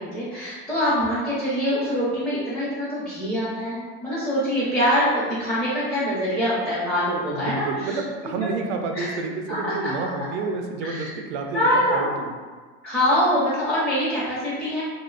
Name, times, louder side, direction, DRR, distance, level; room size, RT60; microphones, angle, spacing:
voice 1, 0.0-8.0 8.4-8.6 8.9-9.1 9.5-9.7 10.8-11.1 11.5-12.2 12.8-14.8, equal, 5° left, -12 dB, 0.7 m, -24 dB
voice 2, 7.3-12.3, right 3 dB, 85° right, 3 dB, 0.5 m, -29 dB
2.6 x 2.1 x 2.4 m, 1.4 s
supercardioid pair, 115°, 33 cm